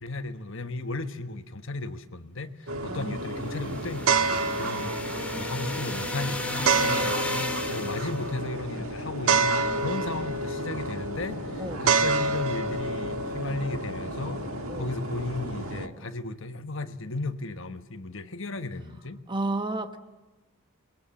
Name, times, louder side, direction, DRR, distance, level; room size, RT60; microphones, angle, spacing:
voice 1, 0.0-7.2 7.7-14.4 14.7-19.2, left 2 dB, 60° left, 1.3 m, -35 dB
sound 1, 2.7-15.9, left 2 dB, 90° left, 3.0 m, -42 dB
sound 2, 2.7-15.9, right 4 dB, 75° right, 1.6 m, -29 dB
voice 2, 2.9-3.9 11.6-11.9 14.7-14.9 19.3-20.0, right 2 dB, 20° right, 1.3 m, -33 dB
sound 3, 3.3-8.3, left 2 dB, 5° left, 2.6 m, -34 dB
30.0 x 22.0 x 7.6 m
head